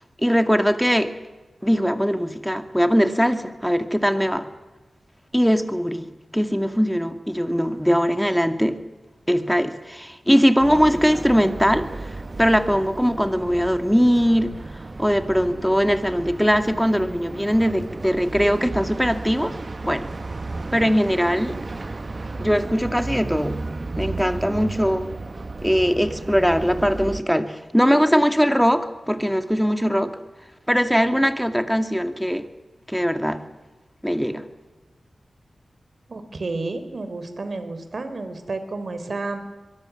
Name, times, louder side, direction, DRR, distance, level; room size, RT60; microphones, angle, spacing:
voice 1, 0.2-1.1 1.6-4.5 5.3-8.8 9.3-14.5 15.0-19.6 19.8-20.1 20.7-21.6 22.4-23.6 24.0-25.1 25.6-30.2 30.7-32.5 32.9-33.4 34.0-34.5, equal, ahead, 8 dB, 2.2 m, -21 dB
sound 1, 10.6-27.2, right 3 dB, 40° right, 1.2 m, -33 dB
voice 2, 36.1-39.4, right 3 dB, 60° right, 9 dB, 4.0 m, -31 dB
24.5 x 23.0 x 7.2 m, 1.2 s
cardioid pair, 60°, 0 cm